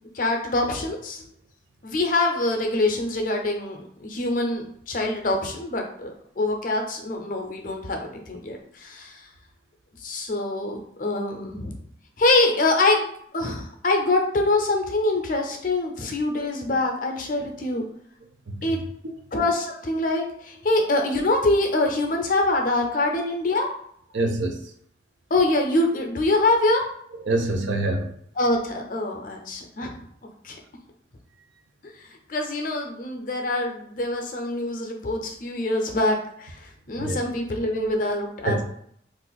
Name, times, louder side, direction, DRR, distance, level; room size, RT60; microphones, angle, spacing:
voice 1, 0.1-1.2 1.8-6.1 6.4-9.2 10.0-11.8 12.2-13.1 13.3-17.8 18.6-18.8 19.3-23.7 25.3-26.8 28.4-30.1 30.4-30.6 32.0-36.6 36.9-38.6, left 2 dB, 45° left, 0.5 m, -24 dB
voice 2, 18.5-18.8 24.1-24.7 27.1-28.1 34.5-34.6 37.0-37.2 38.4-38.6, right 2 dB, 85° right, 0.5 m, -26 dB
2.5 x 2.4 x 3.9 m
head